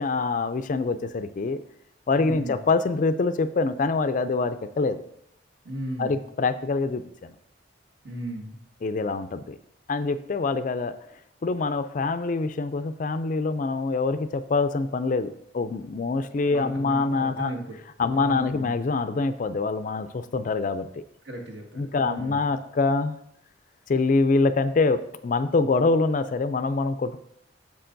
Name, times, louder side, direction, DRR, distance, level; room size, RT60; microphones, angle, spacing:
voice 1, 0.0-1.6 2.1-5.0 6.0-7.0 8.8-9.5 9.9-10.9 11.4-17.5 18.0-21.0 21.7-23.2 23.9-27.2, left 3 dB, 40° left, 12 dB, 0.4 m, -25 dB
voice 2, 2.2-2.6 5.6-6.2 8.0-8.6 16.5-17.8 18.1-18.7 21.2-22.5, right 1 dB, 60° right, 0 dB, 1.7 m, -36 dB
10.0 x 7.4 x 2.6 m, 0.74 s
head